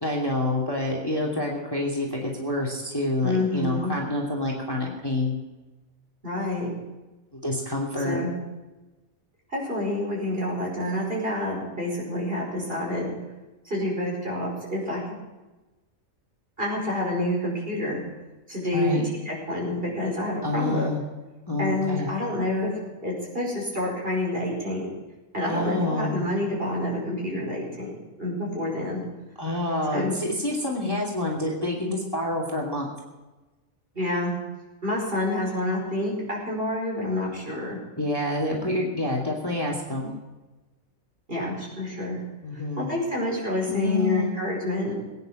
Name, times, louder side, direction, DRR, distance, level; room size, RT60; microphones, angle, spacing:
voice 1, 0.0-5.4 7.3-8.2 18.7-19.0 20.4-21.0 21.5-22.1 25.4-26.2 29.4-32.9 38.0-40.1 42.4-42.9 43.7-44.3, left 2 dB, 15° left, -2 dB, 2.4 m, -27 dB
voice 2, 3.2-3.9 6.2-6.7 8.0-8.3 9.5-13.1 13.7-15.0 16.6-18.0 18.5-19.0 19.3-20.9 21.6-22.7 23.0-24.9 25.3-27.9 28.2-29.0 29.9-30.1 34.0-34.4 34.8-37.8 41.3-42.2 42.8-44.9, left 1 dB, 40° right, -3 dB, 5.3 m, -28 dB
20.5 x 9.7 x 6.4 m, 1.1 s
omnidirectional pair, 1.5 m